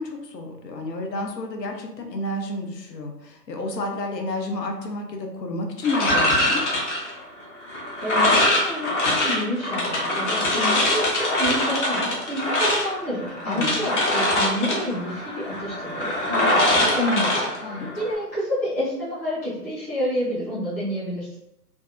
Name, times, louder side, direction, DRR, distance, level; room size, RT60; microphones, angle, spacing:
voice 1, 0.0-6.6 13.4-13.8 17.6-17.9, left 2 dB, 80° left, 3 dB, 0.7 m, -30 dB
sound 1, 5.8-18.2, left 1 dB, 45° left, 0.8 m, -23 dB
voice 2, 8.0-21.4, equal, 10° left, -13 dB, 0.5 m, -29 dB
2.6 x 2.3 x 2.4 m, 0.82 s
figure-of-eight pair, 130°, 49 cm